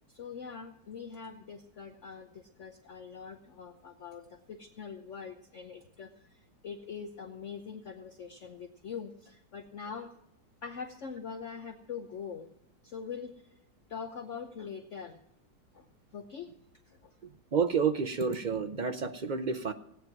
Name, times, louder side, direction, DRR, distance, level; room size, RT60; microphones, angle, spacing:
voice 1, 0.1-10.1 10.6-12.5 12.8-13.4 13.9-15.2 15.7-15.9 16.1-16.5 16.9-17.1, left 6 dB, 50° left, 6 dB, 1.0 m, -43 dB
voice 2, 17.5-19.7, right 6 dB, 65° right, 8 dB, 0.4 m, -29 dB
16.5 x 9.3 x 5.9 m, 0.79 s
omnidirectional pair, 1.9 m